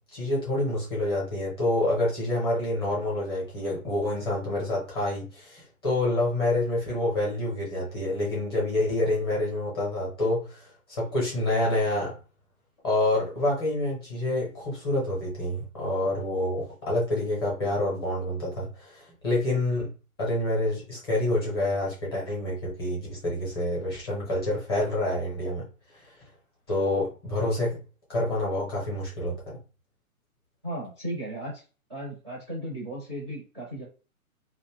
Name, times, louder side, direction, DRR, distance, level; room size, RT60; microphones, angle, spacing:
voice 1, 0.1-12.1 12.8-19.9 20.2-25.6 26.7-27.8 28.1-29.3, left 1 dB, 15° left, -5 dB, 0.7 m, -27 dB
voice 2, 30.6-31.6 31.9-33.8, right 1 dB, 20° right, -5 dB, 0.5 m, -35 dB
2.5 x 2.1 x 3.3 m, 0.34 s
hypercardioid pair, 160°, 43 cm